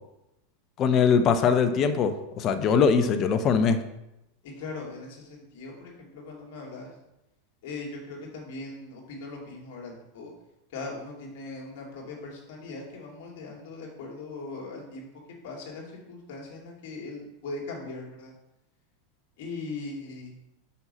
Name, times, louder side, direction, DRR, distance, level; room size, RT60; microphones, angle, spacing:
voice 1, 0.8-3.8, left 6 dB, 40° left, 10 dB, 0.8 m, -22 dB
voice 2, 4.4-6.9 7.6-10.3 10.7-15.1 15.4-18.3 19.4-20.3, left 3 dB, 65° left, -1 dB, 2.5 m, -39 dB
5.7 x 5.6 x 5.3 m, 0.91 s
hypercardioid pair, 105°, 0 cm